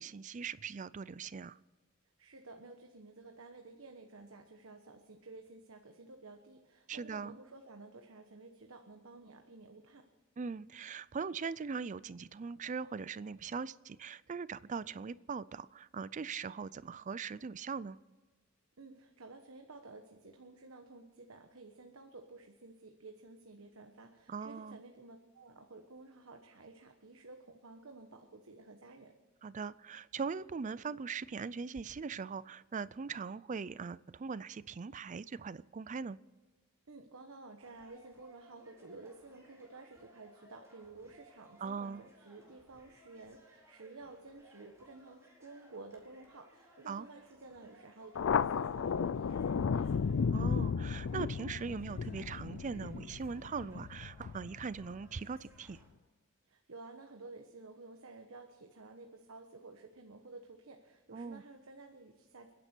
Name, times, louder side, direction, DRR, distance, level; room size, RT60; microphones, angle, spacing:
voice 1, 0.0-1.6 6.9-7.4 10.4-18.0 24.3-24.8 29.4-36.2 41.6-42.0 46.9-47.0 50.3-55.8 61.1-61.4, right 5 dB, 35° right, 19 dB, 0.4 m, -40 dB
voice 2, 2.2-10.1 18.8-29.1 36.9-50.0 56.4-62.5, right 3 dB, 80° right, 4 dB, 1.2 m, -53 dB
sound 1, 37.6-55.9, equal, 15° right, 4.5 m, -63 dB
Thunder, 48.1-55.2, left 6 dB, 65° left, 0.4 m, -34 dB
29.5 x 10.5 x 4.5 m, 1.3 s
head